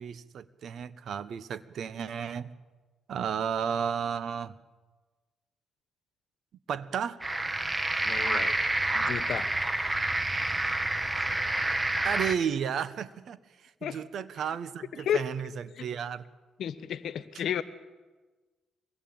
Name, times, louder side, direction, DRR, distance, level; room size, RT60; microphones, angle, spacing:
voice 1, 0.0-2.5 3.1-4.5 6.7-7.2 12.0-16.2, right 7 dB, 65° right, 14 dB, 1.3 m, -33 dB
sound 1, 7.2-12.4, right 2 dB, 20° right, 1.7 m, -28 dB
voice 2, 8.0-8.6 8.9-9.5 13.8-14.0 15.0-15.2 15.8-15.9 16.6-17.6, left 9 dB, 70° left, 13 dB, 1.4 m, -32 dB
24.0 x 20.5 x 8.9 m, 1.3 s
cardioid pair, 90°, 0 cm